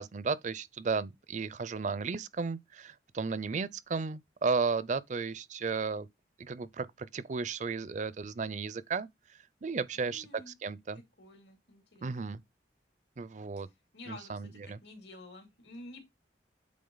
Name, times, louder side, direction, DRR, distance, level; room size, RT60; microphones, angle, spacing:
voice 1, 0.0-6.1 6.4-9.1 9.6-10.3 10.6-11.0 12.0-12.4 13.2-13.7 14.1-14.8, right 4 dB, 45° right, 0.5 m, -34 dB
voice 2, 9.9-10.5 11.2-12.4 13.9-16.0, left 2 dB, 75° left, 2.7 m, -50 dB
8.6 x 3.8 x 3.9 m
head